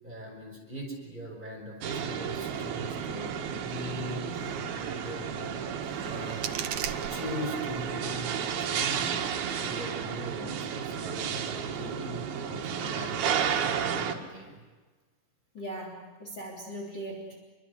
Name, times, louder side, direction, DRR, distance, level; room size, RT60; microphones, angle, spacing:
voice 1, 0.0-5.5 6.1-6.5 7.1-14.6, equal, 10° right, 1 dB, 5.7 m, -41 dB
sound 1, 1.8-14.2, right 7 dB, 85° right, 3.5 m, -32 dB
sound 2, 5.8-7.8, right 9 dB, 65° right, 2.3 m, -38 dB
voice 2, 15.5-17.4, right 1 dB, 30° left, -1 dB, 3.9 m, -39 dB
28.0 x 24.0 x 8.2 m, 1.3 s
omnidirectional pair, 4.3 m